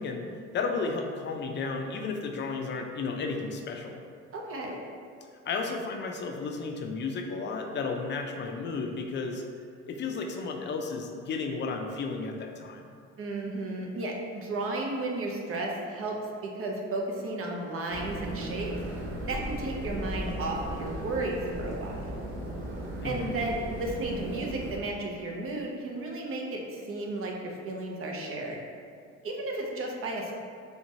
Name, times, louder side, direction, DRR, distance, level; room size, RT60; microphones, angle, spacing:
voice 1, 0.0-4.0 5.5-9.5 9.9-12.8 23.0-23.4, left 4 dB, 35° left, 3 dB, 0.4 m, -33 dB
voice 2, 4.3-4.8 13.2-16.2 16.4-18.7 19.3-22.1 23.0-28.6 29.2-30.3, right 2 dB, 45° right, -1 dB, 0.6 m, -33 dB
sound 1, 17.9-24.8, right 1 dB, 75° right, 0.8 m, -36 dB
3.5 x 2.9 x 2.7 m, 2.2 s
supercardioid pair, 80°, 31 cm